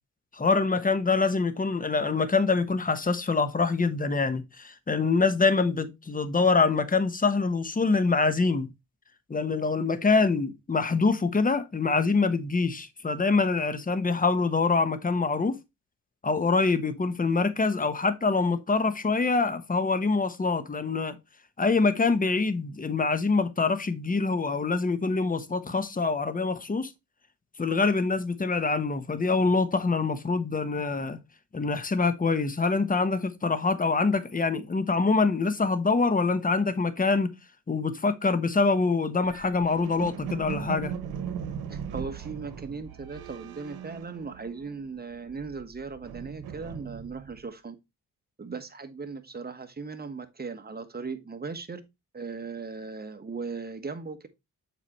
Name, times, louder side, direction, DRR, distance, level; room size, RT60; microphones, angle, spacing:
voice 1, 0.3-8.7 9.3-15.6 16.2-21.2 21.6-26.9 27.6-31.2 31.5-37.3 37.7-40.9, left 4 dB, 25° left, 1.0 m, -25 dB
sound 1, 39.2-44.8 45.1-47.4, right 8 dB, 90° right, 0.9 m, -39 dB
voice 2, 41.7-47.7 48.4-51.8 52.1-54.3, right 4 dB, 25° right, 1.3 m, -38 dB
7.4 x 5.0 x 3.0 m
cardioid pair, 70°, 36 cm